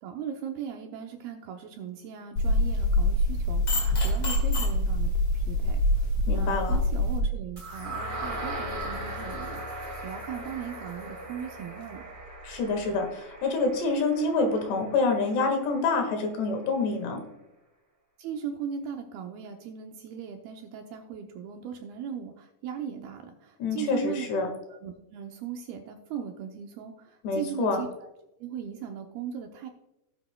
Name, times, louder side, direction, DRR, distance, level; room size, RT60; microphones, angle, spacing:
voice 1, 0.0-12.0 18.2-24.3 24.7-27.9 28.4-29.7, right 8 dB, 75° right, 4 dB, 2.3 m, -38 dB
sound 1, 2.4-7.2, left 1 dB, 40° left, 2.7 m, -25 dB
voice 2, 6.3-6.8 12.4-17.2 23.6-24.5 27.2-27.8, left 3 dB, 75° left, 4 dB, 3.7 m, -27 dB
sound 2, 7.6-15.5, right 1 dB, 30° right, 0.9 m, -38 dB
17.0 x 7.7 x 2.2 m, 0.90 s
omnidirectional pair, 4.9 m